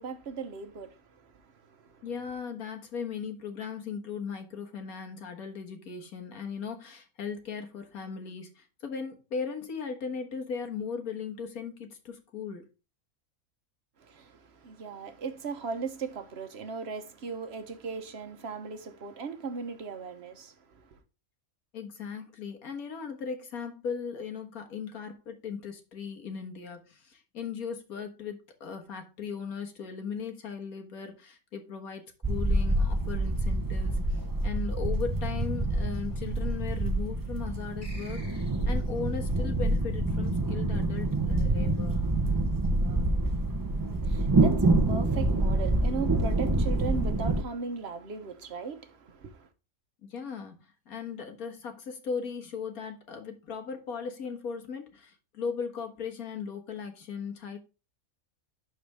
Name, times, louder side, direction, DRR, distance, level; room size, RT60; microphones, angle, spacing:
voice 1, 0.0-2.0 14.0-21.0 43.6-49.5, right 4 dB, 50° right, 1.1 m, -38 dB
voice 2, 2.0-12.7 21.7-42.0 50.0-57.6, left 6 dB, 85° left, 1.9 m, -38 dB
sound 1, 32.2-47.4, right 2 dB, 25° right, 0.5 m, -27 dB
sound 2, 37.8-39.0, left 1 dB, 15° left, 3.2 m, -50 dB
11.5 x 4.3 x 3.4 m
omnidirectional pair, 1.5 m